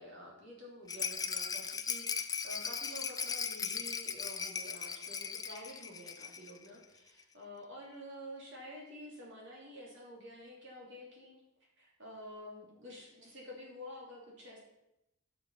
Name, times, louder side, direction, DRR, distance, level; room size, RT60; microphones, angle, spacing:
voice 1, 0.0-11.4 11.8-14.6, equal, 55° right, -3 dB, 3.0 m, -49 dB
Rattle, 0.9-6.6 6.8-6.9 7.2-7.3, left 6 dB, 15° left, 0.4 m, -38 dB
11.5 x 6.6 x 5.5 m, 0.88 s
head